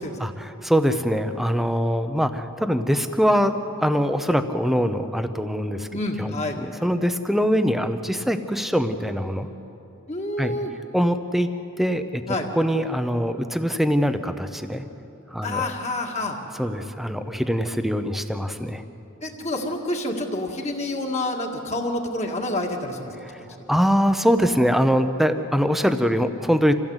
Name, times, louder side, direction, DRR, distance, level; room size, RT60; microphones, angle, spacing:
voice 1, 0.2-5.9 6.2-9.5 10.4-10.6 10.9-11.5 11.8-14.8 15.3-15.7 16.5-18.8 23.2-23.4 23.7-26.7, equal, ahead, 8 dB, 0.8 m, -23 dB
voice 2, 5.9-6.6 10.1-10.7 12.3-12.5 15.4-16.4 19.2-23.1, left 2 dB, 30° left, 2 dB, 2.0 m, -28 dB
26.5 x 16.0 x 8.1 m, 2.9 s
head